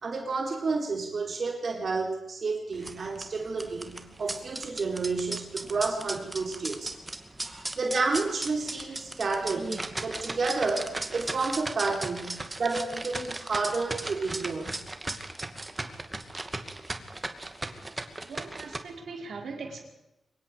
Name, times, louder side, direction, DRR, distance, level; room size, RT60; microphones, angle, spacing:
voice 1, 0.0-7.0 7.7-14.8 17.0-17.1, right 3 dB, 55° right, 2 dB, 4.2 m, -30 dB
sound 1, 2.7-18.8, right 2 dB, 20° right, 2.4 m, -37 dB
voice 2, 18.2-19.8, right 4 dB, 75° right, 2 dB, 5.3 m, -40 dB
24.5 x 22.0 x 5.1 m, 0.90 s
cardioid pair, 80°, 0 cm